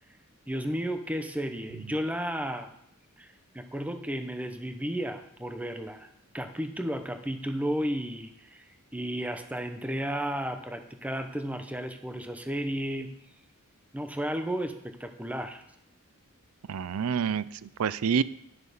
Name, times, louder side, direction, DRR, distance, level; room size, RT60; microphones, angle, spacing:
voice 1, 0.5-2.7 3.2-6.1 6.3-13.1 13.9-15.6, equal, 5° right, 7 dB, 0.8 m, -33 dB
voice 2, 16.7-18.2, right 6 dB, 85° right, 18 dB, 0.4 m, -28 dB
11.5 x 6.6 x 6.7 m, 0.75 s
head